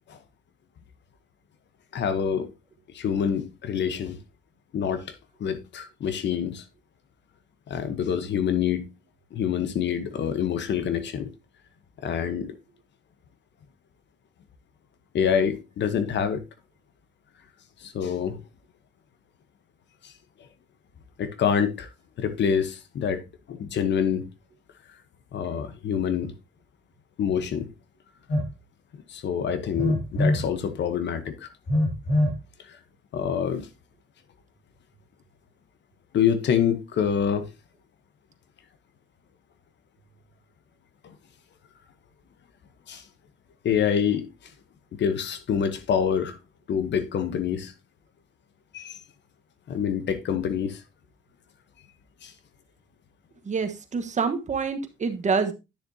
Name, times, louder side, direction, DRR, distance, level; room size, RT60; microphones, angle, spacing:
voice 1, 1.9-2.5 2.9-4.2 4.7-5.1 5.4-6.6 7.7-8.9 9.3-11.3 12.0-12.6 15.1-16.4 17.8-18.4 20.0-20.1 21.2-21.9 22.2-23.2 23.5-24.3 25.3-26.4 27.2-27.7 29.1-31.5 32.6-32.8 33.1-33.7 36.1-37.5 41.0-41.1 42.9-43.0 43.6-44.3 44.9-46.4 46.7-47.7 48.7-49.0 49.7-50.8 52.2-52.3, left 8 dB, 65° left, 1.1 m, -26 dB
Telephone, 28.3-28.5 29.7-30.5 31.7-32.4, left 1 dB, 45° left, 2.2 m, -23 dB
voice 2, 53.4-55.5, right 5 dB, 35° right, 1.3 m, -26 dB
10.0 x 6.7 x 2.8 m
cardioid pair, 90°, 20 cm